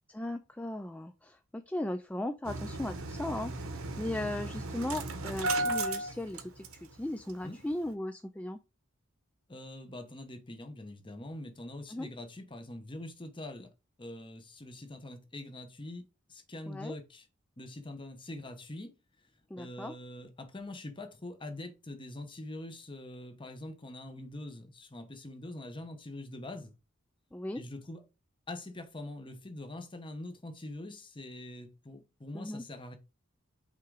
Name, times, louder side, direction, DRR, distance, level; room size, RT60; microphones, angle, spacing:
voice 1, 0.1-8.6 11.9-12.1 16.7-17.0 19.5-20.0 27.3-27.6 32.3-32.6, left 1 dB, 5° left, 0.3 m, -37 dB
Engine starting, 2.4-7.0 7.3-7.4 7.7-7.9, right 2 dB, 85° right, 1.0 m, -35 dB
voice 2, 9.5-13.7 14.0-16.0 16.3-17.3 17.6-18.9 19.5-26.7 27.5-28.0 28.5-33.0, left 1 dB, 25° left, 1.0 m, -44 dB
5.6 x 3.7 x 4.8 m
head